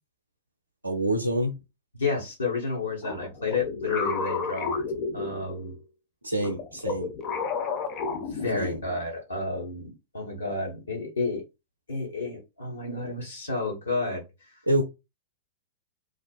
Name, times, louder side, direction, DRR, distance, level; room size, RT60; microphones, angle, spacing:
voice 1, 0.8-1.5 6.2-7.1 8.6-8.8 14.7-14.8, right 1 dB, 90° right, 0.4 m, -26 dB
voice 2, 1.9-4.7 5.1-5.7 7.6-7.7 8.3-11.4 11.9-14.2, left 3 dB, 80° left, 0.7 m, -31 dB
sound 1, 3.0-5.8 6.4-9.1, left 4 dB, 35° left, 0.5 m, -32 dB
2.3 x 2.2 x 2.4 m
figure-of-eight pair, 100°, 0 cm